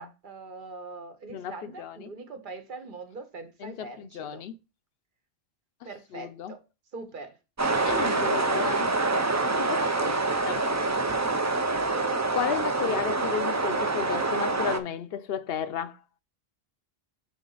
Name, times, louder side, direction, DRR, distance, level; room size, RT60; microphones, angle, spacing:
voice 1, 0.0-4.4 5.8-6.6 6.9-7.4 7.9-8.3, right 3 dB, 55° right, 1.0 m, -42 dB
voice 2, 1.3-2.1 3.6-4.6 6.1-6.5 7.8-8.9 9.4-10.7 12.3-16.0, left 8 dB, 70° left, 0.8 m, -34 dB
sound 1, 7.6-14.8, right 3 dB, 30° right, 0.3 m, -26 dB
7.1 x 4.0 x 3.8 m
omnidirectional pair, 1.1 m